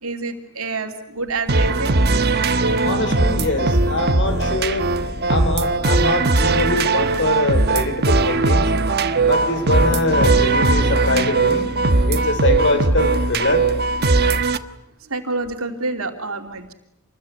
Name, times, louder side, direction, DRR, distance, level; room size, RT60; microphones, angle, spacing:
voice 1, 0.0-2.0 15.1-16.7, right 3 dB, 70° right, 5 dB, 3.0 m, -27 dB
sound 1, 1.5-14.6, right 3 dB, 50° right, 1.3 m, -19 dB
voice 2, 2.8-4.9 5.3-8.7 9.2-11.7 12.1-13.6, left 2 dB, 60° left, 9 dB, 4.2 m, -23 dB
27.5 x 21.0 x 9.5 m, 0.82 s
head